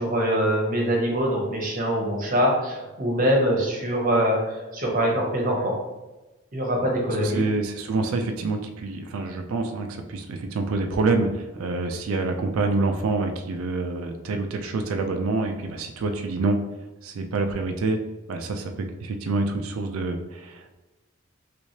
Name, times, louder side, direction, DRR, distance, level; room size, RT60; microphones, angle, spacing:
voice 1, 0.0-5.7 6.5-7.5, equal, 40° right, -2 dB, 0.9 m, -23 dB
voice 2, 7.1-16.6 17.0-18.0 18.3-20.7, right 3 dB, 85° right, 5 dB, 0.4 m, -27 dB
3.3 x 3.1 x 2.7 m, 1.1 s
head